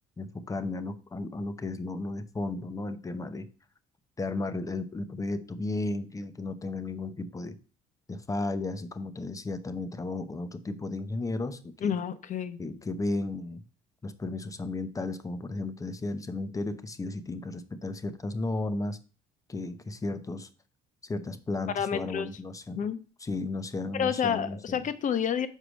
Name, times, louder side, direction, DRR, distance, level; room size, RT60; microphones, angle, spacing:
voice 1, 0.2-3.5 4.2-7.6 8.1-11.9 12.6-13.6 14.0-19.0 19.5-20.5 21.0-22.8 23.2-24.8, left 2 dB, 20° left, 0.9 m, -34 dB
voice 2, 11.8-12.6 21.7-22.3 22.7-23.0 23.9-25.5, left 7 dB, 50° left, 1.0 m, -29 dB
6.5 x 4.9 x 6.3 m
cardioid pair, 110°, 17 cm